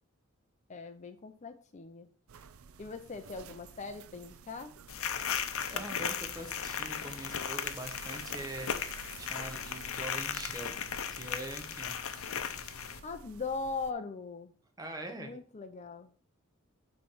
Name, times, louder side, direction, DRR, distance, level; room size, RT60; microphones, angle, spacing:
voice 1, 0.7-2.1 2.8-4.7 13.0-14.5 15.2-16.1, left 4 dB, 35° left, 8 dB, 0.5 m, -40 dB
sound 1, 2.3-13.9, right 6 dB, 85° right, 0.5 m, -52 dB
sound 2, 4.9-13.0, left 7 dB, 90° left, 0.6 m, -37 dB
voice 2, 5.7-12.4 14.8-15.3, right 1 dB, 20° right, 4 dB, 1.0 m, -44 dB
7.2 x 3.2 x 5.5 m, 0.43 s
head